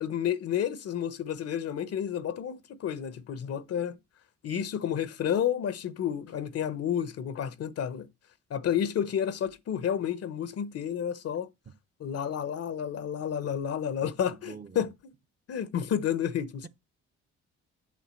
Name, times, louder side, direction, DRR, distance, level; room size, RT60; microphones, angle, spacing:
voice 1, 0.0-4.0 4.4-8.1 8.5-11.5 12.0-14.9 15.5-16.7, left 9 dB, 55° left, 0.9 m, -30 dB
voice 2, 14.0-14.9, right 6 dB, 30° right, 0.8 m, -47 dB
8.6 x 3.6 x 6.3 m
cardioid pair, 80°, 29 cm